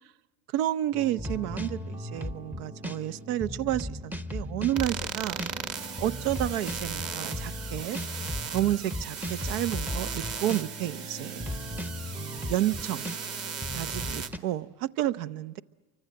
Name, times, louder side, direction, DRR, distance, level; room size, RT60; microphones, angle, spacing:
voice 1, 0.5-5.4 6.0-8.0 8.5-11.5 12.2-13.1 13.7-15.6, right 13 dB, 70° right, 0.9 m, -30 dB
sound 1, 0.9-14.4, left 1 dB, 5° right, 0.7 m, -37 dB
sound 2, 4.8-14.3, right 6 dB, 35° right, 1.7 m, -37 dB
28.5 x 24.5 x 7.7 m
supercardioid pair, 110°, 46 cm